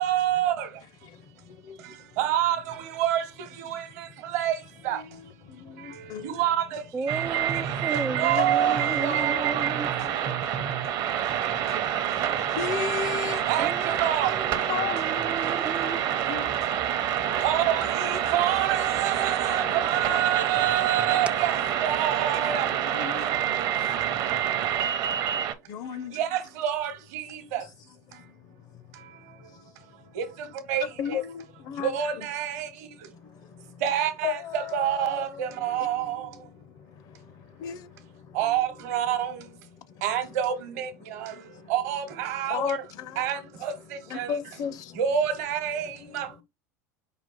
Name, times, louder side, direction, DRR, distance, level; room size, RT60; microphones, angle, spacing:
voice 1, 0.0-0.7 2.2-2.6 3.0-3.2 3.7-3.8 4.3-4.5 4.8-5.0 6.2-6.8 8.2-9.7 13.5-14.3 17.4-21.5 21.8-22.7 26.2-27.2 27.5-27.6 30.2-30.3 30.7-30.8 31.8-32.7 33.8-36.2 38.4-39.3 40.0-40.9 41.2-41.3 41.7-42.8 43.2-43.7 44.1-44.3 45.0-45.9 46.1-46.3, right 10 dB, 70° right, 1.0 m, -27 dB
voice 2, 1.0-2.2 3.7-4.4 4.8-6.5 7.7-7.9 8.1-13.5 14.7-17.4 18.2-18.3 19.1-23.3 25.7-26.3 27.4-27.7 28.1-30.2 30.8-33.8 34.2-38.7 39.7-40.4 41.0-41.7 42.3-45.0 45.7-46.4, left 8 dB, 45° left, 0.5 m, -38 dB
voice 3, 6.9-9.9 13.6-14.0 14.3-16.0, right 5 dB, 15° right, 0.4 m, -34 dB
sound 1, 7.1-25.5, right 10 dB, 50° right, 0.7 m, -27 dB
5.0 x 2.4 x 3.8 m
hypercardioid pair, 90°, 9 cm